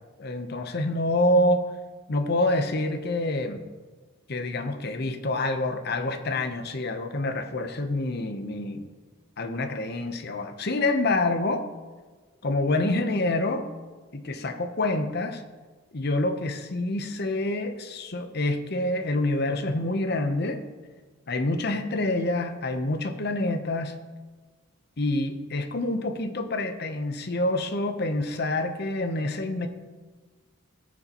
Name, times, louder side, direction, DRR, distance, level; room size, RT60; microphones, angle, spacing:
voice 1, 0.2-1.6 2.1-3.6 4.3-8.9 9.4-11.6 12.4-13.7 14.1-15.4 15.9-20.6 21.3-24.0 25.0-29.7, left 2 dB, 50° left, 7 dB, 0.8 m, -27 dB
15.0 x 6.8 x 2.9 m, 1.4 s
head